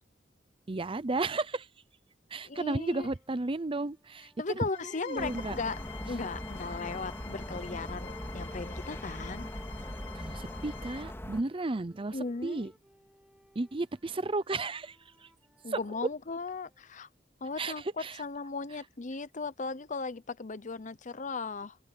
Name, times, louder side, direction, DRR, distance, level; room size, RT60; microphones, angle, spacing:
voice 1, 0.7-1.7 2.3-4.3 4.6-4.7 5.0-5.6 10.1-12.2 12.4-12.7 13.5-15.0 15.2-15.3 15.7-15.8 17.6-17.7 18.0-18.2, right 2 dB, 30° right, 0.7 m, -33 dB
voice 2, 2.4-3.1 4.4-5.8 6.1-9.5 12.1-12.6 15.6-17.1 17.4-21.8, left 4 dB, 45° left, 0.8 m, -37 dB
sound 1, 2.8-9.1 9.8-16.9, equal, 5° right, 7.4 m, -63 dB
sound 2, 4.7-11.0, left 9 dB, 80° left, 2.7 m, -49 dB
sound 3, 5.2-11.4, equal, 15° left, 3.0 m, -40 dB
head